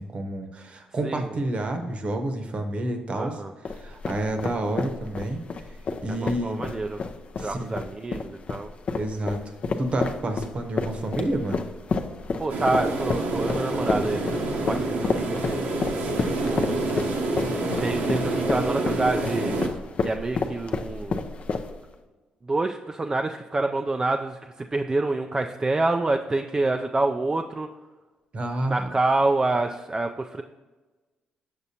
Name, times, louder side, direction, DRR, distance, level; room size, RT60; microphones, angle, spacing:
voice 1, 0.0-5.4 6.0-6.7 7.4-7.7 8.9-9.4 9.8-11.6 28.3-28.9, right 1 dB, 45° right, 6 dB, 0.9 m, -29 dB
voice 2, 3.2-3.5 6.1-7.0 7.4-8.7 12.4-15.5 16.2-16.9 17.8-19.7 20.0-21.2 22.4-27.7 28.7-30.4, right 2 dB, 25° right, 4 dB, 0.3 m, -27 dB
sound 1, 3.6-21.9, left 4 dB, 50° left, 0.5 m, -30 dB
sound 2, 12.5-19.7, right 2 dB, 75° right, 1.0 m, -27 dB
6.7 x 6.0 x 2.8 m, 1.2 s
cardioid pair, 80°, 3 cm